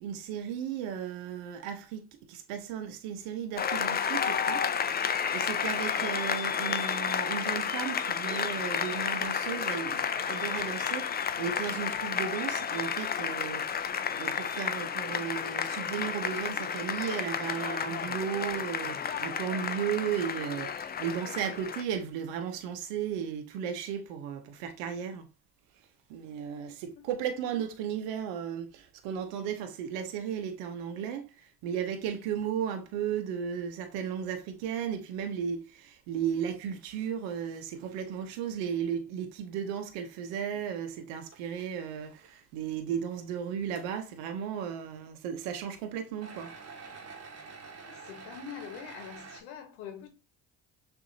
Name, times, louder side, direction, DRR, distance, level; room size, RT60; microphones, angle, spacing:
voice 1, 0.0-4.7 5.3-25.3 26.1-31.3 31.6-46.5, right 8 dB, 85° right, 0.7 m, -35 dB
Applause, 3.6-21.8, left 7 dB, 25° left, 0.3 m, -31 dB
sound 1, 41.3-41.7 42.2-42.3 42.9-43.0 43.7-43.8 46.2-49.4, right 4 dB, 35° right, 1.2 m, -47 dB
voice 2, 47.8-50.1, left 8 dB, 85° left, 1.0 m, -44 dB
6.3 x 2.7 x 2.6 m
hypercardioid pair, 50°, 43 cm